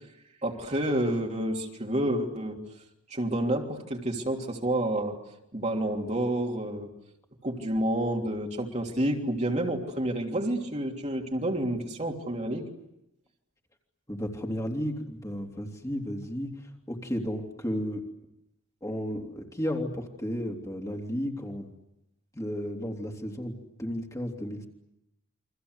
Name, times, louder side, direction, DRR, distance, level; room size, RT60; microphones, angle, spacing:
voice 1, 0.4-2.6 3.1-5.2 5.5-6.9 7.4-12.7, right 1 dB, 35° right, 1 dB, 3.2 m, -29 dB
voice 2, 14.1-18.0 18.8-21.7 22.3-24.7, equal, 15° left, 1 dB, 3.3 m, -33 dB
29.5 x 24.5 x 8.2 m, 0.87 s
head